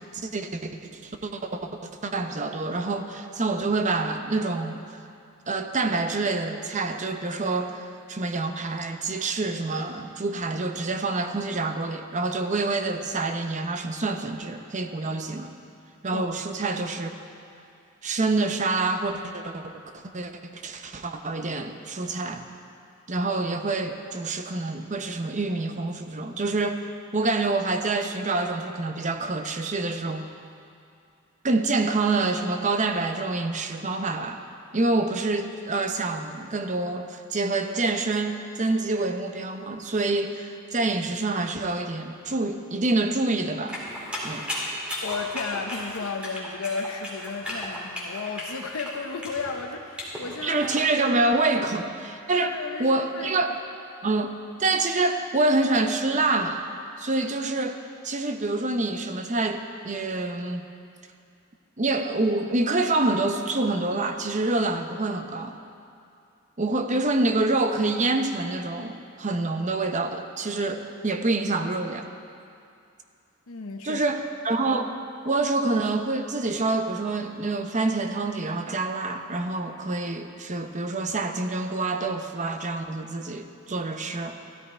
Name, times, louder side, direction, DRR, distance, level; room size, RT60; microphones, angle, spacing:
voice 1, 0.1-1.7 2.0-4.8 5.5-15.5 16.0-17.1 18.0-19.6 19.9-22.5 23.1-30.2 31.4-34.4 34.7-43.8 44.2-44.5 50.4-52.5 52.8-53.5 54.0-54.3 54.6-56.7 57.0-57.8 58.0-60.6 61.8-65.6 66.6-72.0 73.8-74.9 75.2-84.4, right 2 dB, 35° right, 7 dB, 0.8 m, -27 dB
sound 1, 43.7-50.9, left 1 dB, 5° right, 2.7 m, -35 dB
voice 2, 45.0-50.8 51.5-51.6 52.3-53.3 54.0-54.1 66.7-66.8 73.5-74.1, left 4 dB, 80° left, 2 dB, 0.8 m, -34 dB
15.0 x 13.0 x 4.4 m, 2.5 s
head